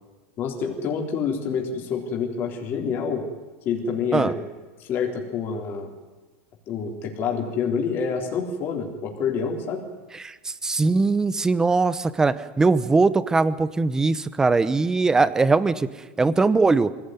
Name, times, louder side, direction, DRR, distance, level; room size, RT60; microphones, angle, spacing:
voice 1, 0.4-3.2 3.7-4.4 4.8-5.9 6.7-9.8, left 6 dB, 30° left, 1 dB, 3.6 m, -27 dB
voice 2, 10.2-15.9 16.2-16.9, right 3 dB, 10° right, 15 dB, 0.8 m, -21 dB
24.0 x 17.5 x 9.4 m, 1.3 s
supercardioid pair, 170°, 7 cm